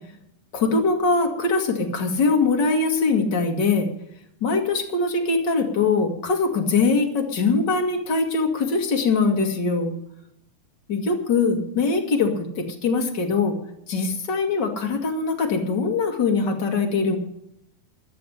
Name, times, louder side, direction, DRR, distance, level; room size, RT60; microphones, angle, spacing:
voice 1, 0.5-3.9 4.4-9.9 10.9-13.6 13.9-17.2, left 4 dB, 35° left, 2 dB, 2.1 m, -22 dB
15.0 x 6.7 x 10.0 m, 0.75 s
omnidirectional pair, 4.2 m